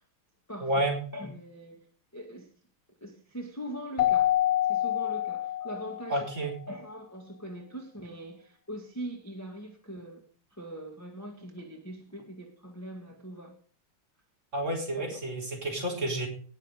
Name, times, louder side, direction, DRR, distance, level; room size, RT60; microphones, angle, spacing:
voice 1, 0.6-1.0 6.1-6.5 14.5-16.3, right 1 dB, 30° right, -1 dB, 4.3 m, -30 dB
voice 2, 1.1-1.8 2.1-2.5 3.0-4.3 4.7-6.3 6.7-10.2 10.5-13.5 15.1-15.2, right 1 dB, 10° left, 1 dB, 1.7 m, -41 dB
Keyboard (musical), 4.0-6.2, left 12 dB, 70° left, 1.3 m, -27 dB
18.5 x 6.5 x 5.2 m, 0.44 s
omnidirectional pair, 2.4 m